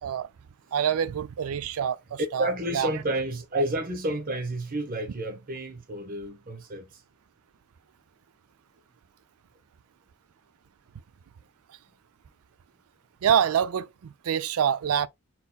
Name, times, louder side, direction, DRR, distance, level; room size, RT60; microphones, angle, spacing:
voice 1, 0.7-2.9 13.2-15.1, right 8 dB, 80° right, 0.4 m, -26 dB
voice 2, 2.2-7.0, right 1 dB, 40° right, 0.8 m, -30 dB
4.2 x 4.1 x 2.2 m
head